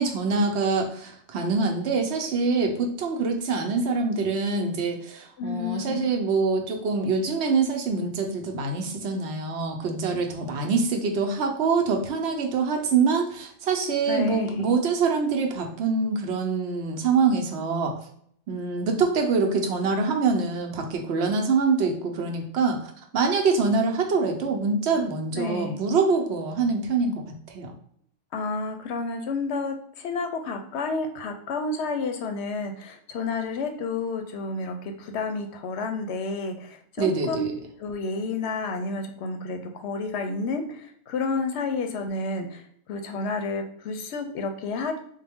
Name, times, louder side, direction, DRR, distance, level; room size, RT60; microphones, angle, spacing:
voice 1, 0.0-17.9 18.5-22.8 23.1-27.2 27.5-27.7 37.0-37.5, right 4 dB, 65° right, 3 dB, 0.8 m, -25 dB
voice 2, 5.4-6.1 14.1-14.7 25.3-25.8 28.3-37.5 37.8-42.6 42.9-45.0, left 3 dB, 70° left, 5 dB, 0.8 m, -30 dB
3.6 x 2.2 x 3.4 m, 0.64 s
omnidirectional pair, 1.3 m